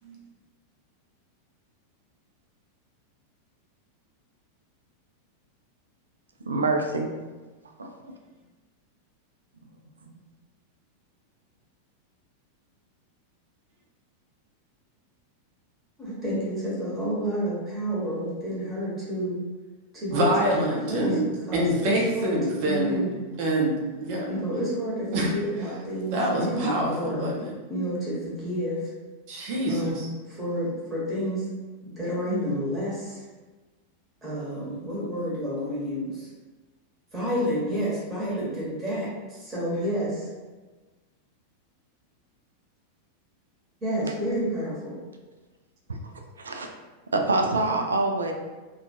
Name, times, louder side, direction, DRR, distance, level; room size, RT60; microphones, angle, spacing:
voice 1, 6.5-7.1 7.8-8.1 46.4-46.7 47.1-48.3, right 2 dB, 75° right, 3 dB, 0.3 m, -25 dB
voice 2, 16.0-19.4 19.9-21.2 21.5-23.1 24.3-27.3 27.7-28.9 29.7-31.5 31.8-33.2 34.2-36.3 37.1-40.3 43.8-45.0, equal, 15° right, -7 dB, 1.0 m, -30 dB
voice 3, 20.1-21.2 21.5-23.1 23.4-24.3 25.1-25.3 26.1-27.5 29.3-30.1 32.3-32.5, right 1 dB, 45° right, -1 dB, 0.6 m, -26 dB
2.6 x 2.3 x 2.7 m, 1.3 s
figure-of-eight pair, 90°, 0 cm